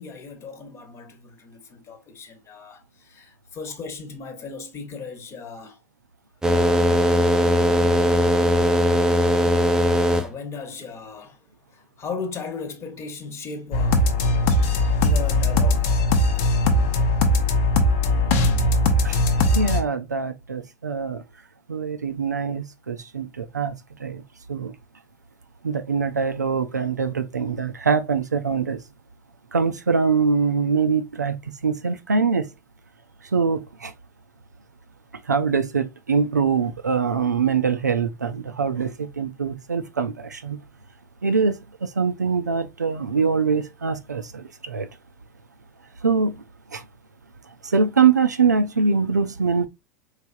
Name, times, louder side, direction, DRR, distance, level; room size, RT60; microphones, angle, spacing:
voice 1, 0.0-5.8 6.5-6.9 10.1-11.4 11.7-14.1 15.0-15.9, left 5 dB, 30° left, 1.0 m, -37 dB
sound 1, 6.4-10.3, equal, 5° right, 0.5 m, -19 dB
sound 2, 13.7-19.8, left 2 dB, 50° left, 0.8 m, -20 dB
voice 2, 19.5-21.2 21.7-23.7 24.0-24.2 24.5-24.7 25.6-28.8 29.5-31.4 31.6-32.5 33.3-33.9 35.3-40.6 41.2-41.5 41.8-44.9 46.0-46.4 46.7-46.8 47.6-49.7, right 5 dB, 80° right, 0.4 m, -23 dB
4.4 x 3.2 x 2.5 m
figure-of-eight pair, 80°, 9 cm